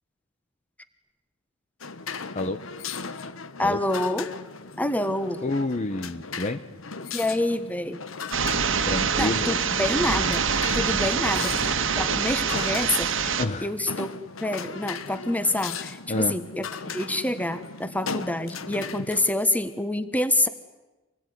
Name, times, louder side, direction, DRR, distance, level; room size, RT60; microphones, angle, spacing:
sound 1, 1.8-19.3, left 5 dB, 75° left, 1.3 m, -37 dB
voice 1, 3.6-4.3 4.8-5.4 7.1-8.0 9.2-11.5 12.0-14.1 14.4-20.5, left 1 dB, 10° left, 11 dB, 1.5 m, -27 dB
voice 2, 5.4-6.6 8.8-9.6 13.4-13.7 16.1-16.4, left 2 dB, 35° left, 10 dB, 0.9 m, -28 dB
sound 2, 8.3-13.4, right 6 dB, 65° right, 1.7 m, -25 dB
26.5 x 19.5 x 9.9 m, 1.1 s
head